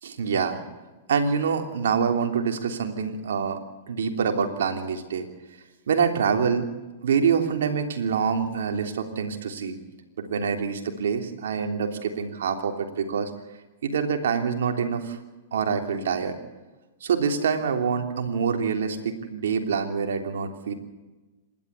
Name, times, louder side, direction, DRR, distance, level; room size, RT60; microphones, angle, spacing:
voice 1, 0.0-0.6 1.1-3.6 3.9-5.3 5.9-6.7 7.0-9.8 10.2-13.3 13.8-15.2 15.5-16.3 17.0-20.7, right 6 dB, 70° right, 5 dB, 3.2 m, -26 dB
27.0 x 12.0 x 8.3 m, 1.2 s
hypercardioid pair, 110°, 0 cm